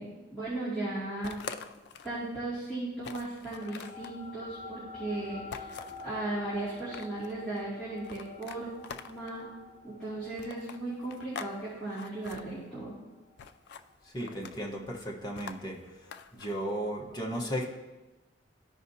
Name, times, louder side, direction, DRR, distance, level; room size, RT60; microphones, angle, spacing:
voice 1, 0.0-1.4 2.0-5.7 6.0-8.7 9.1-9.5 9.8-12.9, right 2 dB, 5° left, -13 dB, 2.5 m, -36 dB
sound 1, 1.2-2.2 2.6-2.7 3.0-4.2 5.5-6.1 6.7-7.3 8.0-9.4 10.4-11.6 11.8-12.4 13.4-13.9 14.2-14.7 15.4-16.5, left 6 dB, 55° left, 0.4 m, -44 dB
sound 2, 3.5-14.3, left 3 dB, 55° right, 1.9 m, -49 dB
voice 2, 14.0-15.8 16.3-17.6, equal, 20° left, -2 dB, 1.2 m, -35 dB
13.5 x 5.0 x 2.8 m, 1.1 s
head